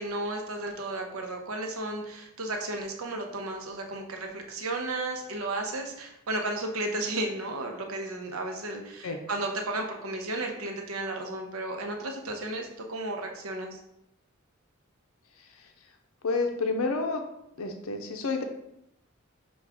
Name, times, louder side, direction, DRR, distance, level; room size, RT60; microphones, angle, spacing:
voice 1, 0.0-13.8, right 2 dB, 80° right, 2 dB, 0.8 m, -33 dB
voice 2, 16.2-17.2 17.6-18.4, left 3 dB, 80° left, 4 dB, 0.5 m, -29 dB
6.0 x 2.3 x 3.4 m, 0.82 s
head